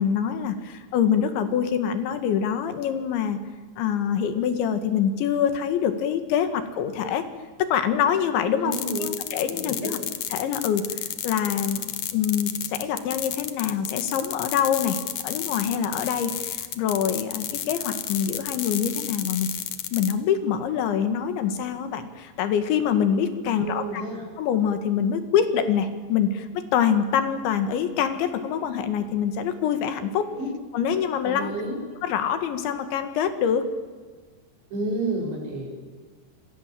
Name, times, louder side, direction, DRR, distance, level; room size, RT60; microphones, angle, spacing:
voice 1, 0.0-3.4 3.8-7.2 7.6-8.8 9.0-10.0 10.3-10.9 11.2-11.8 12.1-19.5 19.9-24.0 24.4-30.3 30.7-31.5 32.0-33.7, left 8 dB, 80° left, 9 dB, 4.1 m, -25 dB
voice 2, 8.5-9.2 9.5-10.0 23.5-24.2 30.4-30.5 31.2-31.8 34.7-35.7, right 2 dB, 70° right, 1 dB, 9.0 m, -30 dB
sound 1, 8.7-20.1, left 11 dB, 65° left, 2.1 m, -32 dB
26.5 x 26.0 x 7.6 m, 1.4 s
omnidirectional pair, 5.2 m